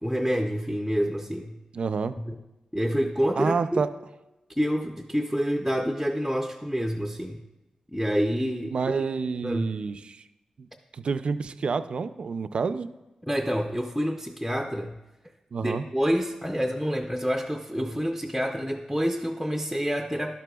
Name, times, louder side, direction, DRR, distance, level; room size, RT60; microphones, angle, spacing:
voice 1, 0.0-1.6 2.2-2.4 2.7-3.8 4.6-7.4 7.9-8.8 9.4-9.7 13.2-15.0 15.6-20.4, equal, ahead, 3 dB, 0.5 m, -27 dB
voice 2, 1.7-2.2 3.4-3.9 8.7-10.2 10.6-10.7 10.9-12.9 15.5-15.8, right 5 dB, 60° right, 12 dB, 0.4 m, -28 dB
12.5 x 11.5 x 2.3 m, 1.0 s
wide cardioid pair, 175°, 2 cm